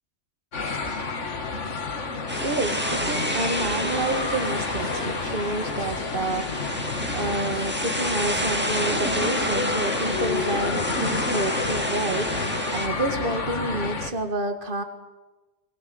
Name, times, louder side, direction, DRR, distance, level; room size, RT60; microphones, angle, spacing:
sound 1, 0.5-14.1, left 4 dB, 75° left, 2.1 m, -29 dB
sound 2, 2.3-12.9, right 1 dB, 10° right, 1.9 m, -30 dB
voice 1, 2.4-6.7 7.1-14.8, right 2 dB, 45° right, 7 dB, 2.1 m, -29 dB
23.0 x 22.0 x 7.9 m, 1.1 s
omnidirectional pair, 1.3 m